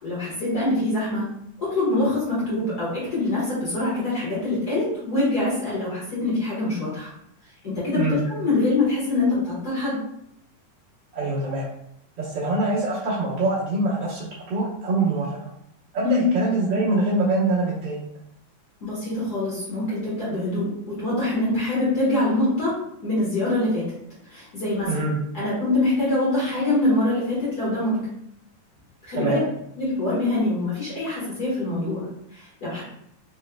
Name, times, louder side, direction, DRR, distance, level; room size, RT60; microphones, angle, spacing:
voice 1, 0.0-1.3 1.6-7.1 7.6-10.0 16.0-16.3 18.8-22.7 23.0-23.8 24.3-25.0 25.3-28.0 29.0-29.4 29.8-32.8, left 2 dB, 50° left, -8 dB, 1.2 m, -24 dB
voice 2, 11.1-11.7 12.2-15.5 15.9-18.0 24.9-25.1 29.1-29.4, right 2 dB, 80° right, -8 dB, 1.0 m, -24 dB
5.6 x 3.0 x 2.2 m, 0.75 s
omnidirectional pair, 3.6 m